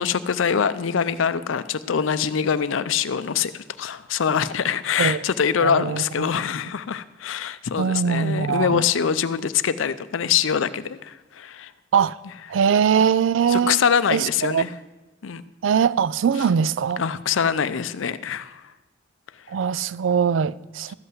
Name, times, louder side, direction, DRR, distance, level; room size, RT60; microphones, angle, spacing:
voice 1, 0.0-11.7 13.5-14.7 15.2-15.4 17.0-18.6, left 7 dB, 80° left, 0.5 m, -24 dB
voice 2, 5.6-6.3 7.8-8.9 11.9-12.1 12.5-13.8 14.1-14.6 15.6-17.0 19.5-20.9, right 7 dB, 75° right, 0.4 m, -21 dB
13.5 x 5.6 x 7.8 m
head